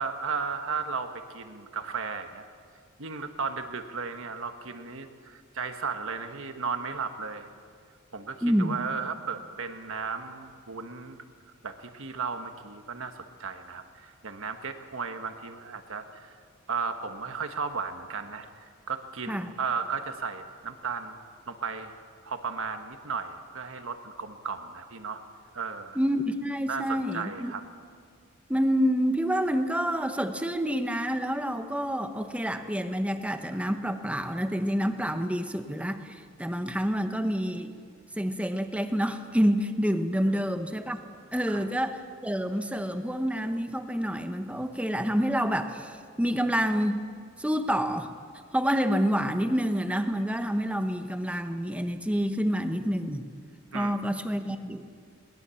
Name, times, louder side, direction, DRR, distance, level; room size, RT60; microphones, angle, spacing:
voice 1, 0.0-2.4 3.0-7.5 8.1-11.2 11.6-16.3 16.7-21.9 22.2-25.2 25.5-26.0 26.7-27.6 41.5-41.6 53.7-53.9, right 5 dB, 65° right, 7 dB, 1.5 m, -35 dB
voice 2, 8.4-8.8 19.3-19.5 25.9-27.5 28.5-37.7 38.2-41.0 41.3-47.0 47.4-48.1 48.5-53.2 53.7-54.8, equal, 5° right, 7 dB, 1.1 m, -28 dB
21.5 x 19.5 x 7.1 m, 2.1 s
head